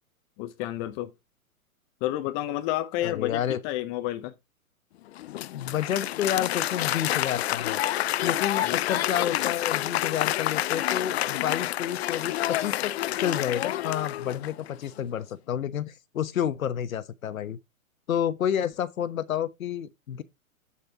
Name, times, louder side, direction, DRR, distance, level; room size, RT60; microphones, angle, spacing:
voice 1, 0.4-1.1 2.0-4.3 8.6-8.8, left 14 dB, 30° left, 0.9 m, -30 dB
voice 2, 3.0-3.6 5.5-7.8 8.2-17.6 18.1-20.2, left 9 dB, 70° left, 1.2 m, -30 dB
Applause, 5.1-14.7, left 14 dB, 50° left, 0.5 m, -28 dB
9.1 x 6.9 x 2.9 m
hypercardioid pair, 120°, 43 cm